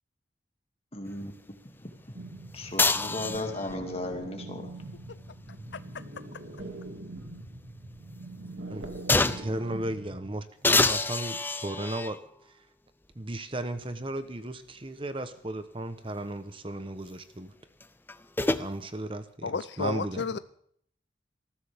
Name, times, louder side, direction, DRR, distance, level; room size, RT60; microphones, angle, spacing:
voice 1, 0.9-1.3 1.8-1.9 2.5-4.7, left 1 dB, 30° left, 4 dB, 2.4 m, -35 dB
sound 1, 2.1-10.4, right 2 dB, 85° right, 2.4 m, -43 dB
sound 2, 2.8-3.8 5.5-7.1 7.5-7.6 9.1-9.6 10.6-12.2 13.1-13.2 17.8-18.7, left 3 dB, 10° left, 0.5 m, -27 dB
voice 2, 5.7-6.0 19.4-20.4, left 4 dB, 65° left, 14 dB, 0.5 m, -33 dB
voice 3, 9.3-12.7 13.1-17.5 18.6-19.5 19.8-20.4, right 1 dB, 30° right, 10 dB, 0.9 m, -35 dB
20.0 x 14.5 x 3.6 m, 0.63 s
head